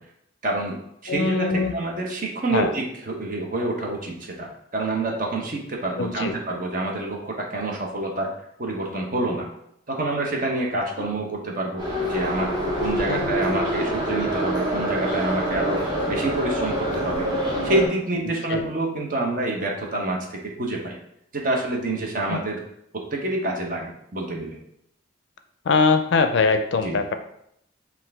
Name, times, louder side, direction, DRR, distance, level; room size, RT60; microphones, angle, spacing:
voice 1, 0.4-0.7 1.0-8.3 8.6-9.5 9.9-11.8 12.1-15.8 16.1-17.3 17.6-21.0 21.3-22.6 23.1-24.6 26.8-27.0, right 2 dB, 45° right, 0 dB, 0.8 m, -27 dB
voice 2, 1.1-1.7 2.5-2.7 6.0-6.4 11.0-11.1 13.1-13.3 18.5-18.6 22.3-22.4 25.7-27.1, left 4 dB, 65° left, 8 dB, 0.4 m, -22 dB
Subway metro underground, 11.8-17.9, equal, 20° right, 1.0 m, -26 dB
5.4 x 2.6 x 3.3 m, 0.74 s
head